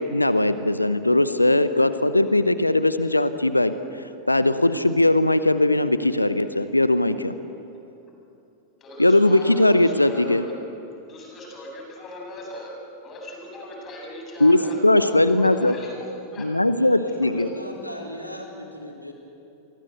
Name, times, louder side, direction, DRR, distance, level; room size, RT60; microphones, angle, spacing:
voice 1, 0.0-3.7 4.3-7.3 9.0-10.4 14.4-15.7 16.4-17.5, left 1 dB, 85° left, 12 dB, 0.9 m, -19 dB
voice 2, 8.8-10.5 11.1-12.7 13.0-16.5 17.2-17.4, left 1 dB, 25° left, 0 dB, 7.8 m, -39 dB
voice 3, 16.6-19.1, equal, 90° right, 0 dB, 4.1 m, -38 dB
29.0 x 23.5 x 8.0 m, 2.9 s
figure-of-eight pair, 90°, 0 cm